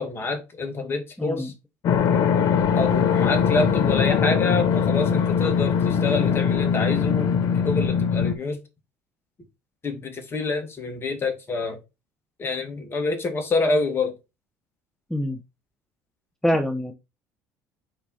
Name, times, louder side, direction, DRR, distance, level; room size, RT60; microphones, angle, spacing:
voice 1, 0.0-1.5 2.3-2.5 2.7-7.3 7.6-8.6 9.8-11.8 12.4-14.2, left 3 dB, 35° left, 2.3 m, -27 dB
voice 2, 1.2-1.5 15.1-15.4 16.4-16.9, equal, 5° left, 1.0 m, -24 dB
sound 1, 1.8-8.3, left 7 dB, 60° left, 0.9 m, -21 dB
5.2 x 4.5 x 4.2 m
hypercardioid pair, 75°, 7 cm